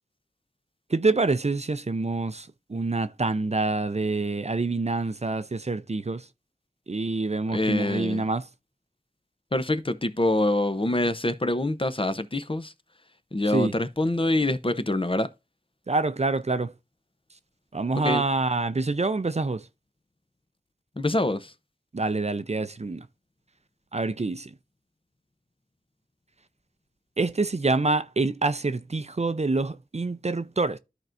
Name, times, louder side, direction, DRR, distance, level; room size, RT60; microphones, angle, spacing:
voice 1, 0.9-6.2 6.9-8.5 13.5-13.7 15.9-16.7 17.7-19.6 21.9-23.1 23.9-24.5 27.2-30.8, right 3 dB, 45° right, 0.5 m, -26 dB
voice 2, 7.5-8.3 9.5-12.7 13.3-15.3 18.0-18.2 21.0-21.5, left 1 dB, 35° left, 0.8 m, -25 dB
13.5 x 4.5 x 2.5 m
wide cardioid pair, 50°, 16 cm